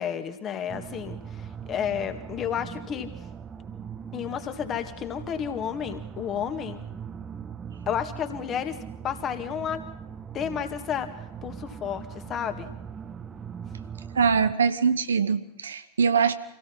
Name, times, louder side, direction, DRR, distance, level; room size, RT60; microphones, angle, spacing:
voice 1, 0.0-3.1 4.1-6.8 7.9-8.8 9.0-9.8 10.3-11.1 11.4-12.7, left 8 dB, 30° left, 2.1 m, -31 dB
sound 1, 0.7-14.5, right 7 dB, 20° right, 1.1 m, -40 dB
voice 2, 14.1-16.3, right 6 dB, 70° right, 1.2 m, -23 dB
26.5 x 17.0 x 5.7 m
figure-of-eight pair, 90°, 0 cm